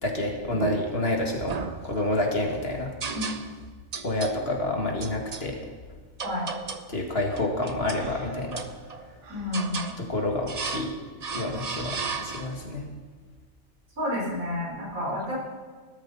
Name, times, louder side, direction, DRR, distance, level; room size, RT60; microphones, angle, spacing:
voice 1, 0.0-1.6 1.8-2.9 4.0-5.6 6.9-8.6 10.0-10.9 11.3-12.8, left 2 dB, 45° left, 1 dB, 2.2 m, -28 dB
sound 1, 0.5-1.1 1.5-2.3 3.0-3.6 3.9-4.4 5.0-5.5 6.2-6.9 7.3-8.1 8.5-9.1 9.5-10.0 10.5-10.9 11.2-12.7, right 5 dB, 40° right, 0.7 m, -34 dB
Breathing, 7.9-9.6, right 3 dB, 65° right, 1.5 m, -44 dB
voice 2, 9.3-9.9 14.0-15.4, left 1 dB, 85° right, -4 dB, 4.9 m, -30 dB
17.5 x 13.0 x 4.2 m, 1.4 s
omnidirectional pair, 1.4 m